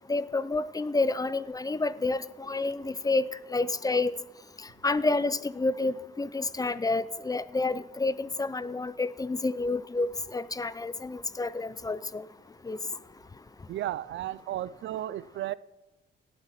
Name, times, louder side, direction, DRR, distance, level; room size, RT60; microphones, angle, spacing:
voice 1, 0.1-3.2 3.5-4.1 4.8-12.2 12.7-12.8, left 3 dB, 20° left, 17 dB, 0.5 m, -29 dB
voice 2, 13.7-15.5, right 13 dB, 70° right, 19 dB, 0.5 m, -34 dB
18.0 x 7.7 x 5.9 m, 1.0 s
cardioid pair, 90°, 20 cm